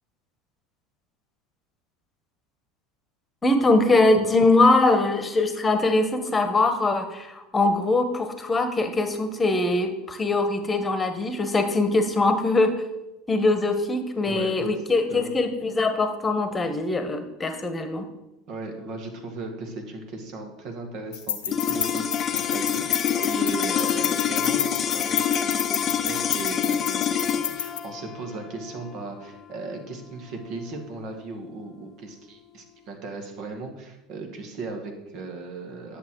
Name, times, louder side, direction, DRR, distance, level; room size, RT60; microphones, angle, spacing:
voice 1, 3.4-12.7 13.3-18.0, left 2 dB, 20° left, 8 dB, 1.3 m, -22 dB
voice 2, 14.2-14.7 15.1-15.3 18.5-36.0, right 3 dB, 55° right, 4 dB, 2.0 m, -37 dB
sound 1, 21.1-27.8, left 9 dB, 80° left, 0.8 m, -30 dB
sound 2, 21.5-31.9, left 8 dB, 40° left, 0.6 m, -27 dB
10.0 x 7.0 x 4.7 m, 0.97 s
hypercardioid pair, 75°, 0 cm